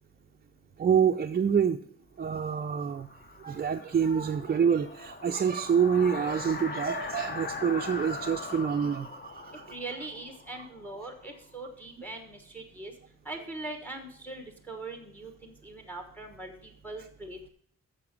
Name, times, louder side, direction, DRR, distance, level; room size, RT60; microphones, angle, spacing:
voice 1, 0.8-1.8 2.2-9.7, right 7 dB, 30° right, 5 dB, 0.4 m, -27 dB
sound 1, 2.6-11.3, left 3 dB, 30° left, 0.8 m, -40 dB
voice 2, 9.7-12.9 13.2-16.5 16.8-17.5, right 2 dB, 5° left, 4 dB, 1.2 m, -41 dB
6.8 x 5.9 x 7.2 m, 0.62 s
wide cardioid pair, 115°, 32 cm